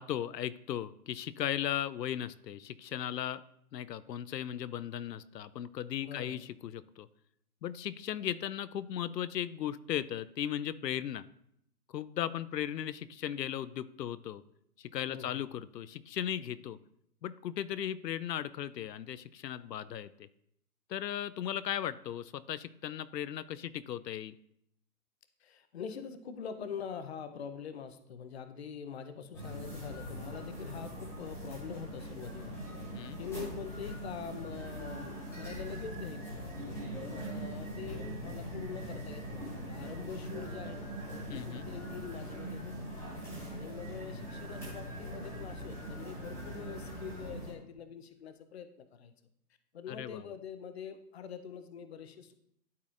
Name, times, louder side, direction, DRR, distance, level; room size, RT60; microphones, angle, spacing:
voice 1, 0.0-3.4 3.7-7.1 7.6-11.3 11.9-14.4 14.8-16.8 17.2-20.3 20.9-24.3 32.9-33.2 41.3-41.7 49.9-50.3, left 10 dB, 85° left, 16 dB, 0.6 m, -37 dB
voice 2, 6.0-6.4 15.1-15.4 25.4-32.6 33.2-36.4 37.0-42.7 43.5-49.1 49.7-52.3, left 7 dB, 40° left, 10 dB, 0.6 m, -44 dB
sound 1, 29.3-47.5, equal, 5° left, 1.5 m, -42 dB
12.5 x 4.2 x 2.5 m, 0.73 s
hypercardioid pair, 160°, 48 cm